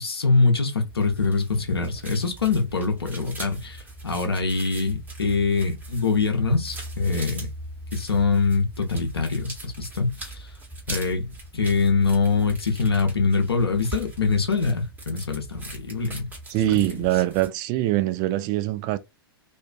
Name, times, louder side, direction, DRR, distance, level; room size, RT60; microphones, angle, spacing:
voice 1, 0.0-7.5 7.9-10.5 10.9-16.3 16.7-16.8, left 4 dB, 80° left, 0.6 m, -24 dB
sound 1, 0.9-17.5, right 2 dB, 15° right, 1.2 m, -40 dB
voice 2, 16.5-19.0, right 15 dB, 35° right, 0.3 m, -23 dB
2.5 x 2.3 x 2.2 m
figure-of-eight pair, 100°, 13 cm